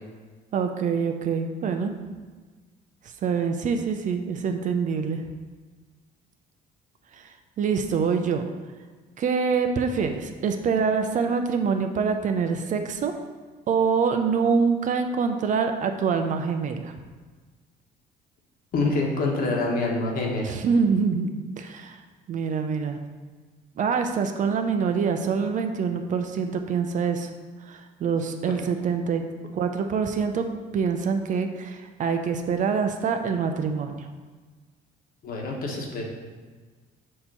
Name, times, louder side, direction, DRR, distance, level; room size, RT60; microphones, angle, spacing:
voice 1, 0.5-1.9 3.2-5.2 7.1-7.3 7.6-8.4 9.2-13.1 13.7-16.9 20.4-22.0 22.3-23.0 23.8-27.3 27.7-29.2 29.5-30.4 30.7-34.1, right 5 dB, 50° right, 6 dB, 0.6 m, -25 dB
voice 2, 18.7-20.6 35.2-36.0, left 2 dB, 60° left, -1 dB, 1.3 m, -26 dB
6.4 x 3.0 x 5.4 m, 1.4 s
cardioid pair, 110°, 17 cm